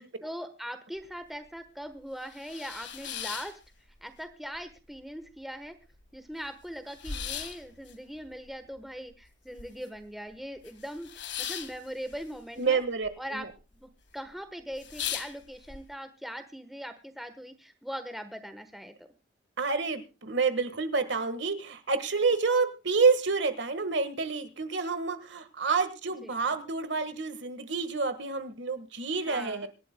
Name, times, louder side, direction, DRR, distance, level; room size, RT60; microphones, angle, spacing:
voice 1, 0.0-3.5 4.0-5.8 6.1-11.1 11.4-12.8 13.2-13.5 13.7-19.1 26.2-26.3 29.2-29.7, equal, ahead, 8 dB, 1.1 m, -41 dB
sound 1, 1.0-1.1 1.5-1.6 2.0-4.2 4.5-5.3 5.6-5.7 5.9-10.1 10.3-13.1 13.4-13.9 14.3-14.4 14.7-15.8, left 8 dB, 65° left, 1.7 m, -39 dB
voice 2, 12.6-13.5 19.6-29.7, right 4 dB, 65° right, 10 dB, 1.5 m, -28 dB
26.0 x 11.5 x 2.2 m, 0.28 s
head